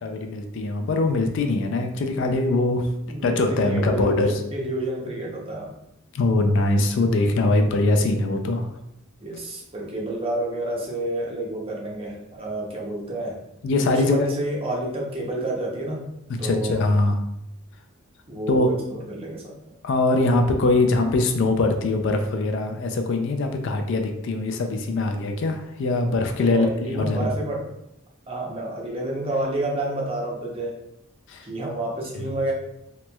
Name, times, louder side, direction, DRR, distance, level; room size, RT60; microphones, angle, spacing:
voice 1, 0.0-2.9 3.2-4.4 6.1-8.7 13.6-14.3 16.4-17.2 18.5-18.7 19.8-27.3 31.3-31.5 32.1-32.3, left 2 dB, 55° left, 5 dB, 0.3 m, -22 dB
voice 2, 3.1-5.7 9.2-13.4 13.8-16.0 16.4-16.9 18.3-19.6 26.5-27.6 28.3-30.8 31.4-32.5, right 1 dB, 25° right, -2 dB, 0.6 m, -29 dB
3.0 x 3.0 x 2.2 m, 0.83 s
head